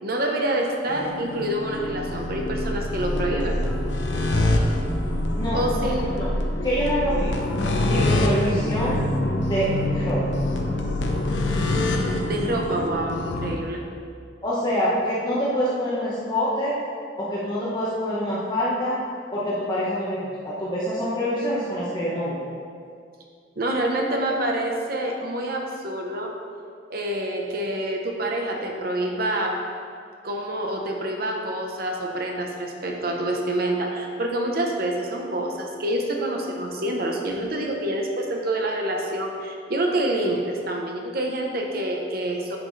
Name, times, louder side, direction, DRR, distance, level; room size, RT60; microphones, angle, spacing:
voice 1, 0.0-3.6 5.5-6.1 8.1-8.2 12.2-13.8 23.6-26.3 26.9-29.5 30.2-42.6, right 1 dB, 55° right, 1 dB, 0.9 m, -27 dB
sound 1, 0.9-13.6, left 1 dB, 80° left, 1.0 m, -25 dB
voice 2, 5.4-5.8 6.2-6.3 6.6-7.4 7.8-9.1 9.4-10.2 14.4-16.7 17.1-19.0 19.3-22.4, equal, 25° left, -8 dB, 1.3 m, -26 dB
10.5 x 8.0 x 3.3 m, 2.3 s
head